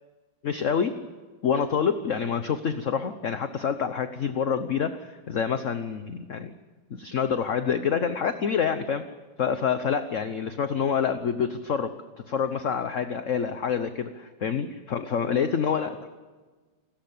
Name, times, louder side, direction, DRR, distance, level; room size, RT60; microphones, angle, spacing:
voice 1, 0.4-0.9 1.4-6.5 6.9-9.0 9.4-11.9 12.3-16.1, left 7 dB, 50° left, 9 dB, 1.2 m, -27 dB
29.0 x 13.5 x 8.8 m, 1.4 s
omnidirectional pair, 2.0 m